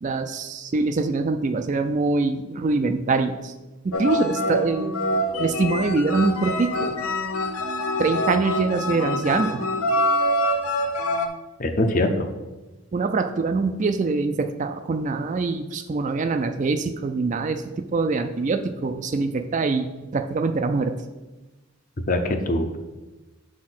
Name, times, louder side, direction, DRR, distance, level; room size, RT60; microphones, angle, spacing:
voice 1, 0.0-3.5 3.8-4.9 5.4-7.0 8.0-9.6 12.9-21.0, right 3 dB, 35° right, 7 dB, 0.3 m, -24 dB
sound 1, 3.9-11.3, left 1 dB, 75° left, 0.7 m, -25 dB
voice 2, 11.6-12.3 22.1-22.8, left 1 dB, 35° left, 6 dB, 0.6 m, -23 dB
6.3 x 4.2 x 6.0 m, 1.1 s
head